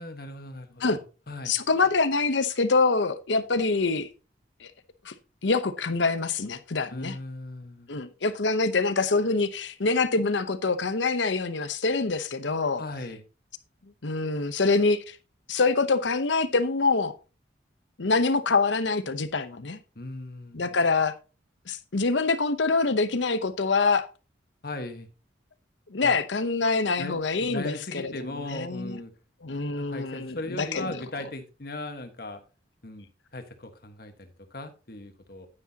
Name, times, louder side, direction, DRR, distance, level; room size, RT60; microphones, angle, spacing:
voice 1, 0.0-1.5 6.9-7.9 12.8-13.2 19.9-20.8 24.6-25.1 26.0-26.2 27.0-29.1 29.8-32.4 32.8-35.5, left 2 dB, 50° left, 1.4 m, -38 dB
voice 2, 1.5-4.1 4.6-4.7 5.0-5.1 5.4-7.2 7.9-12.8 14.0-15.2 15.5-17.2 18.0-19.8 20.5-21.1 21.7-24.1 25.9-28.1 28.5-29.0 29.4-30.9, left 3 dB, 75° left, 0.8 m, -25 dB
9.9 x 9.7 x 2.8 m
head